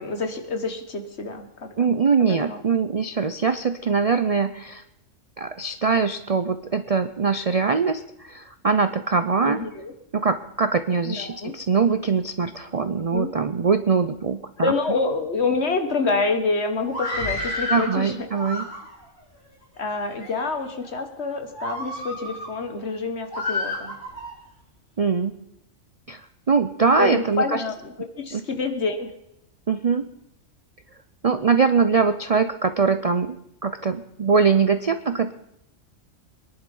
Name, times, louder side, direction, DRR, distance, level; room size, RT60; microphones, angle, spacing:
voice 1, 0.0-1.9 2.3-2.6 9.4-9.9 11.1-11.5 13.1-13.3 14.6-18.3 19.8-23.9 27.0-29.1, left 3 dB, 55° left, 7 dB, 1.8 m, -27 dB
voice 2, 1.8-4.8 5.4-9.6 10.1-14.7 17.7-18.7 25.0-25.4 26.1-26.2 26.5-27.6 28.3-28.4 29.7-30.1 31.2-33.4 33.6-35.3, right 5 dB, 45° right, 10 dB, 0.5 m, -22 dB
Screaming, 16.8-17.9 18.3-19.1 19.8-20.3 20.8-21.0 21.5-22.5 23.3-24.3, left 2 dB, 35° left, 7.4 m, -30 dB
23.0 x 11.0 x 5.4 m, 0.83 s
omnidirectional pair, 1.4 m